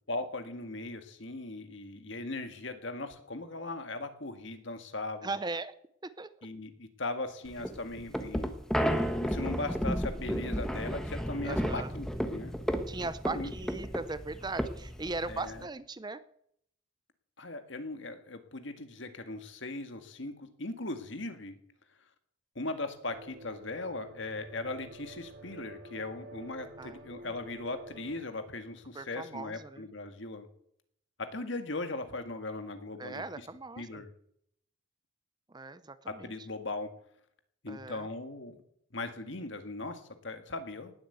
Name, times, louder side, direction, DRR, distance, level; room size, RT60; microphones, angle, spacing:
voice 1, 0.1-5.3 6.4-8.5 9.1-12.5 13.3-13.5 15.3-15.6 17.4-21.6 22.6-30.5 31.2-33.5 33.8-34.1 36.1-36.9 37.6-38.6 38.9-40.9, left 2 dB, 60° left, 8 dB, 1.9 m, -39 dB
voice 2, 5.2-5.7 6.0-6.3 11.4-11.9 12.9-16.2 26.8-27.0 27.3-27.4 28.9-29.8 33.0-34.0 35.5-36.3 37.7-38.1, right 3 dB, 20° right, 14 dB, 0.6 m, -38 dB
sound 1, 7.5-15.6, equal, 5° left, 1.3 m, -33 dB
sound 2, 23.0-28.2, right 1 dB, 60° right, 3.4 m, -49 dB
19.0 x 8.4 x 8.0 m, 0.71 s
head